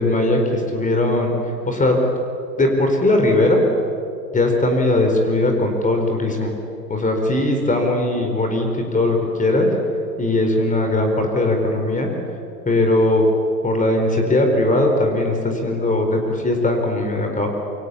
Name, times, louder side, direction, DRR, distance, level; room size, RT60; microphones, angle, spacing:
voice 1, 0.0-2.0 2.6-3.6 4.3-6.5 6.9-9.7 10.2-12.1 12.6-13.2 13.6-17.5, left 2 dB, 15° left, 3 dB, 4.5 m, -19 dB
28.0 x 24.5 x 8.6 m, 2.6 s
figure-of-eight pair, 90°, 50 cm